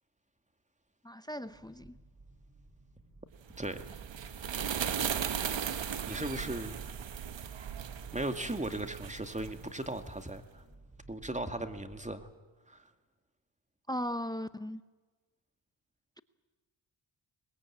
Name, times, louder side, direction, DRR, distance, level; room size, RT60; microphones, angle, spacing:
voice 1, 1.0-2.0 13.9-14.8, equal, 10° left, 14 dB, 0.8 m, -37 dB
sound 1, 1.4-12.1, right 2 dB, 35° right, 6.2 m, -55 dB
sound 2, 3.5-10.1, right 8 dB, 60° right, 1.4 m, -37 dB
voice 2, 6.1-6.8 8.1-10.6 11.1-12.3 12.7-12.9, right 1 dB, 15° right, 8 dB, 2.2 m, -37 dB
21.5 x 20.5 x 8.7 m, 1.3 s
cardioid pair, 50°, 49 cm